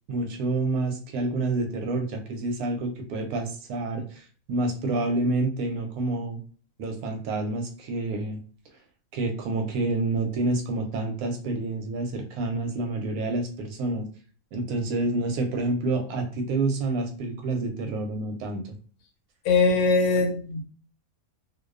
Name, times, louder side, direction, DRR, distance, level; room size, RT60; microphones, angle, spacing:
voice 1, 0.1-6.4 6.8-8.4 9.1-14.1 14.5-18.7, right 2 dB, 85° right, 1.1 m, -28 dB
voice 2, 19.4-20.6, left 4 dB, 85° left, 1.1 m, -21 dB
2.5 x 2.2 x 2.3 m
omnidirectional pair, 1.5 m